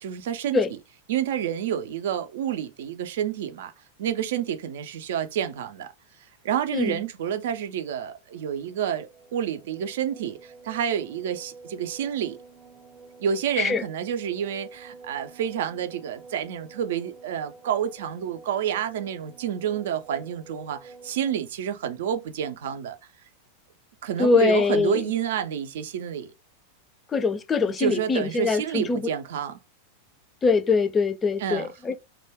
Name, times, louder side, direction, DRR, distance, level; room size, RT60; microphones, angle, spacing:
voice 1, 0.0-0.6 1.1-3.7 4.0-5.9 6.4-12.4 13.2-23.0 24.0-26.3 27.8-29.6 31.4-31.7, right 9 dB, 55° right, 0.4 m, -29 dB
Industrial Drone From Guitar Harmonics, 8.3-21.3, right 4 dB, 25° right, 0.7 m, -49 dB
voice 2, 24.2-25.0 27.1-29.1 30.4-32.0, left 4 dB, 20° left, 0.3 m, -23 dB
2.2 x 2.2 x 3.4 m
figure-of-eight pair, 90°, 0 cm